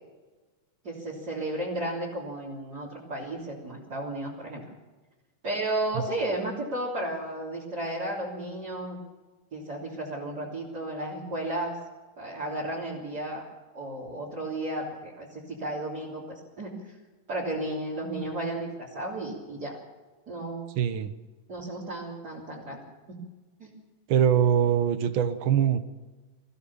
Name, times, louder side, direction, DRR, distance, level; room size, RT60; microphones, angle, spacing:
voice 1, 0.8-4.6 5.4-9.0 9.5-11.8 12.2-13.4 13.7-16.9 17.3-19.8 20.3-20.7 21.5-22.8 23.1-23.2 23.6-23.7, right 1 dB, 30° right, -5 dB, 3.7 m, -33 dB
voice 2, 20.8-21.1 24.1-25.8, right 9 dB, 85° right, 11 dB, 1.1 m, -23 dB
23.5 x 15.5 x 7.1 m, 1.2 s
omnidirectional pair, 3.7 m